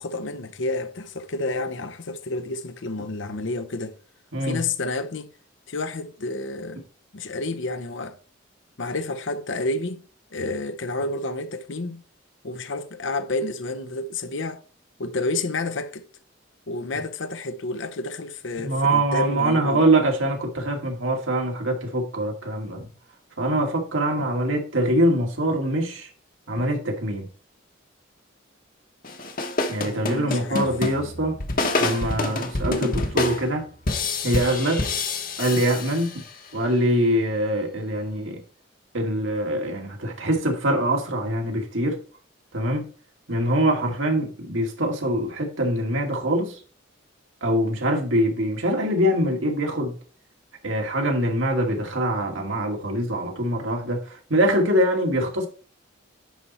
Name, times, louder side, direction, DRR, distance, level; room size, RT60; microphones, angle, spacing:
voice 1, 0.0-4.0 4.4-5.3 5.7-6.8 7.1-8.2 8.8-10.0 10.3-12.0 12.4-14.6 15.0-16.0 16.7-19.8 29.9-30.7, left 2 dB, 70° left, 0.8 m, -30 dB
voice 2, 18.6-22.9 23.4-26.1 26.5-27.3 29.7-31.4 31.8-33.7 34.2-34.9 35.4-36.2 36.5-38.4 38.9-42.0 42.5-42.9 43.3-46.6 47.4-50.0 50.6-55.5, right 1 dB, 80° right, 2.1 m, -24 dB
sound 1, 29.0-36.5, left 2 dB, 45° left, 1.2 m, -28 dB
10.5 x 4.2 x 4.3 m
head